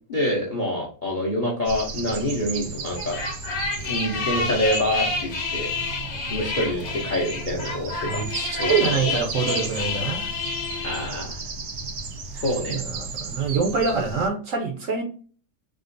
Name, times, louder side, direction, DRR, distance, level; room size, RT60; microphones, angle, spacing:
voice 1, 0.1-3.2 3.8-5.7 6.3-8.2 8.6-9.0 10.8-11.4 12.3-12.8, left 1 dB, 45° left, -2 dB, 0.6 m, -26 dB
sound 1, 1.6-14.3, right 4 dB, 90° right, 1.3 m, -35 dB
sound 2, 3.0-11.1, left 4 dB, 60° left, 1.1 m, -29 dB
voice 2, 8.0-10.2 12.7-15.0, right 5 dB, 65° right, 1 dB, 0.9 m, -25 dB
3.6 x 2.4 x 2.5 m, 0.40 s
omnidirectional pair, 1.8 m